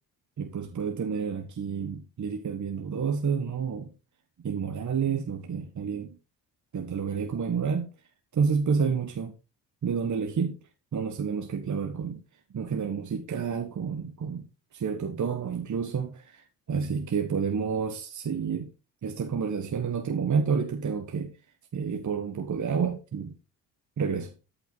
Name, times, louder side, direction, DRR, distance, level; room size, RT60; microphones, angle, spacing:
voice 1, 0.4-3.9 4.4-6.2 6.7-7.9 8.3-9.3 9.8-10.6 10.9-12.2 12.5-14.5 14.7-18.7 19.0-21.3 21.7-23.3 24.0-24.3, right 6 dB, 40° right, 1.5 m, -29 dB
13.5 x 5.8 x 4.1 m
hypercardioid pair, 55°, 44 cm